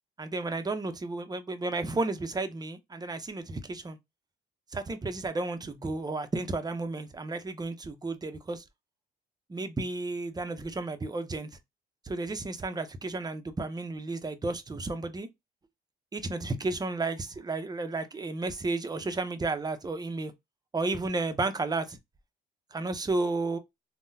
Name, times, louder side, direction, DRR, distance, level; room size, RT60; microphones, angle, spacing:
voice 1, 0.2-4.0 4.7-8.6 9.5-11.5 12.0-15.3 16.1-20.3 20.7-22.0 22.7-23.6, right 3 dB, 20° right, 0.6 m, -32 dB
3.7 x 2.1 x 2.6 m
cardioid pair, 90°, 20 cm